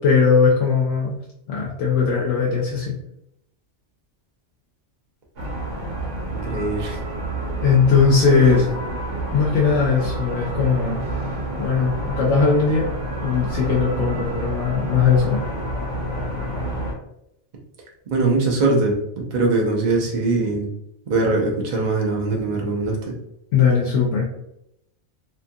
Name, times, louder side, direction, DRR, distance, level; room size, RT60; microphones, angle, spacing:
voice 1, 0.0-1.2 1.5-2.9 7.6-8.7 9.3-11.0 11.6-12.9 13.2-15.4 23.5-24.3, left 5 dB, 80° left, -3 dB, 1.0 m, -19 dB
sound 1, 5.4-16.9, right 1 dB, 80° right, 1.2 m, -29 dB
voice 2, 6.3-7.0 8.2-8.6 18.1-20.7 21.1-23.0, right 3 dB, 45° right, -1 dB, 0.7 m, -21 dB
2.8 x 2.4 x 2.6 m, 0.80 s
omnidirectional pair, 1.2 m